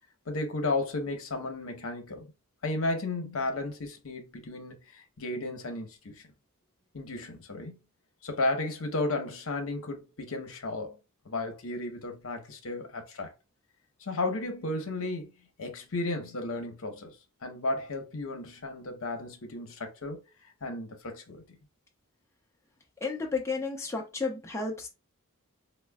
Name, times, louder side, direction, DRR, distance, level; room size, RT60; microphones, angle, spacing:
voice 1, 0.3-2.3 2.6-6.2 6.9-7.8 8.2-11.0 11.2-13.3 14.0-15.3 15.6-17.2 17.4-20.2 20.4-21.4, left 2 dB, 65° left, 0.8 m, -34 dB
voice 2, 23.0-24.9, left 4 dB, 15° left, 0.6 m, -32 dB
4.3 x 2.1 x 2.2 m
head